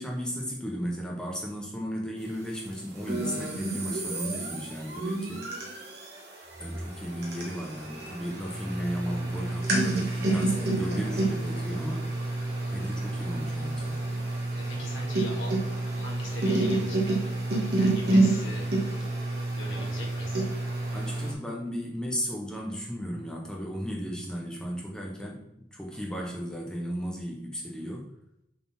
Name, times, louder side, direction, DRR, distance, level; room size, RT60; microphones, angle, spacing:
voice 1, 0.0-5.5 6.6-12.1 12.7-14.1 20.9-28.1, equal, 5° left, -2 dB, 1.3 m, -35 dB
sound 1, 3.0-21.3, right 2 dB, 55° right, 1.9 m, -29 dB
voice 2, 14.5-17.2 17.8-18.7 19.5-20.4, left 1 dB, 85° left, -1 dB, 2.2 m, -41 dB
7.2 x 4.2 x 4.4 m, 0.80 s
head